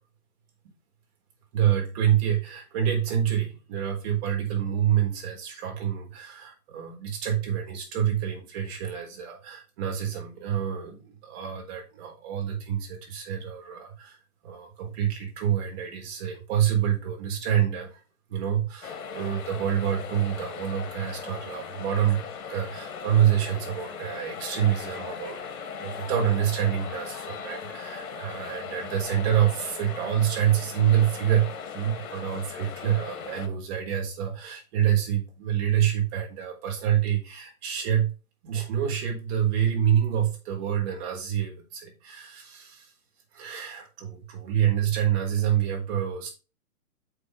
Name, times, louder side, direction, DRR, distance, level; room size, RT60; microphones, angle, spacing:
voice 1, 1.5-14.2 14.4-17.9 18.3-22.2 22.5-25.4 25.8-31.5 31.7-38.1 38.4-42.9 43.3-46.3, right 10 dB, 45° right, 1 dB, 4.1 m, -27 dB
sound 1, 18.8-33.5, left 6 dB, 65° left, 1.9 m, -38 dB
6.7 x 6.0 x 5.0 m, 0.32 s
hypercardioid pair, 130°, 45 cm